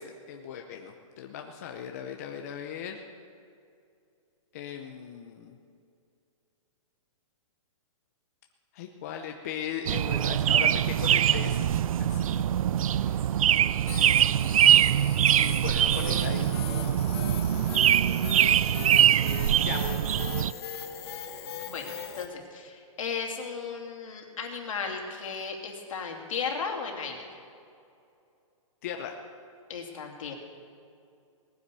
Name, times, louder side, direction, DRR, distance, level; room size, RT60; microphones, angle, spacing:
voice 1, 0.0-3.0 4.5-5.6 8.7-11.6 12.1-12.4 13.0-13.3 15.6-17.0 19.6-19.8 28.8-29.1, left 8 dB, 30° left, 3 dB, 0.7 m, -38 dB
sound 1, 9.9-20.5, right 10 dB, 80° right, 0.4 m, -23 dB
sound 2, 13.9-22.3, left 7 dB, 50° left, 1.2 m, -39 dB
voice 2, 22.2-27.3 29.7-30.3, left 5 dB, 70° left, 1 dB, 2.8 m, -35 dB
18.5 x 10.0 x 6.8 m, 2.5 s
hypercardioid pair, 175°, 17 cm